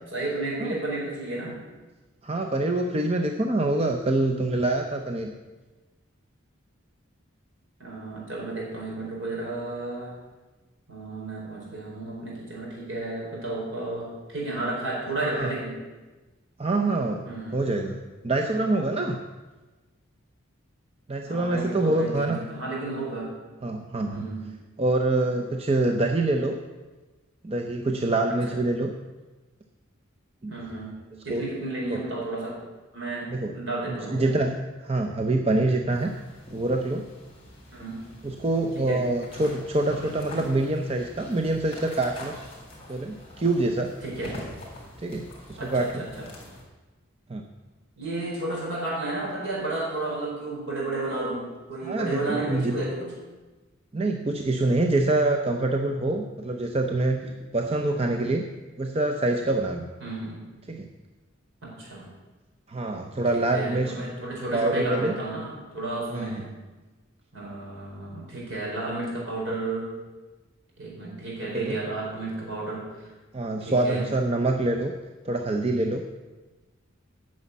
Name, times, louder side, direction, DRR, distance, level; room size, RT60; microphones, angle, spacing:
voice 1, 0.1-1.6 7.8-10.1 10.9-15.8 17.2-17.8 21.3-23.3 24.1-24.5 28.3-28.4 30.5-32.6 32.9-34.3 37.7-38.0 38.7-39.0 44.0-44.5 45.5-46.3 48.0-53.1 60.0-60.4 61.6-62.1 63.3-66.5 67.3-69.9 70.8-72.9 73.6-74.1, right 2 dB, 70° right, -3 dB, 4.4 m, -32 dB
voice 2, 2.2-5.3 15.2-15.5 16.6-17.3 17.5-18.0 18.2-19.2 21.1-22.4 23.6-24.3 24.8-26.6 27.4-28.9 30.4-30.5 31.3-31.5 31.9-32.0 33.3-33.5 33.9-34.6 34.8-36.1 36.5-37.0 38.2-42.4 42.9-43.9 45.0-46.0 47.3-47.4 51.8-52.8 53.9-57.2 57.5-58.4 58.8-59.9 60.7-60.9 62.7-63.9 64.5-65.2 66.1-66.4 71.5-71.8 73.3-74.9 75.2-76.0, right 2 dB, 30° right, 3 dB, 0.6 m, -25 dB
sound 1, 35.9-46.6, left 1 dB, 30° left, 3.2 m, -44 dB
9.9 x 6.3 x 8.1 m, 1.2 s
head